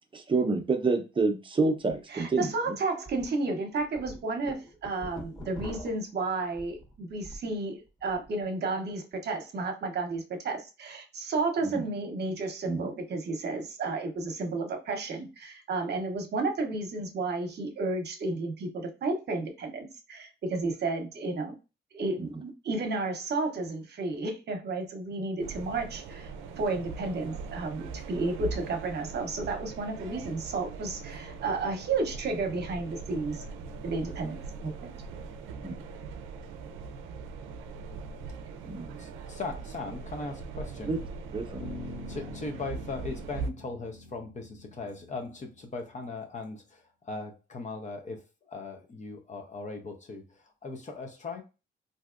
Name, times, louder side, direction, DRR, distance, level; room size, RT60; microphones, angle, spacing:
voice 1, 0.1-2.8 11.6-11.8 12.7-12.9 22.2-22.3 35.6-35.7 38.6-39.0 40.9-41.0 41.3-41.7, right 3 dB, 25° right, 0.7 m, -28 dB
sound 1, 1.8-1.9 2.4-2.5 3.0-3.3 3.7-7.5 7.9-8.3, equal, 20° left, 1.2 m, -44 dB
voice 2, 2.1-21.6 21.9-33.4 33.8-34.4 34.6-34.9, right 3 dB, 55° right, 0.9 m, -32 dB
sound 2, 25.4-43.5, right 5 dB, 85° right, 0.4 m, -41 dB
voice 3, 39.0-41.0 42.1-51.4, left 3 dB, 40° left, 0.8 m, -39 dB
Bass guitar, 41.6-46.0, left 2 dB, 75° left, 1.2 m, -45 dB
3.3 x 2.7 x 2.4 m
cardioid pair, 90°, 20 cm